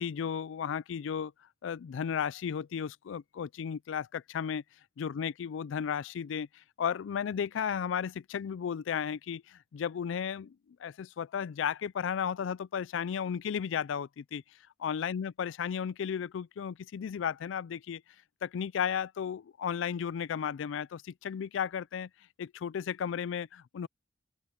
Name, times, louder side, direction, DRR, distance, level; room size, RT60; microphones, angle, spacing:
voice 1, 0.0-1.3 1.6-4.6 5.0-14.4 14.8-18.0 18.4-22.1 22.4-23.9, left 7 dB, 90° left, 0.4 m, -34 dB
open air
head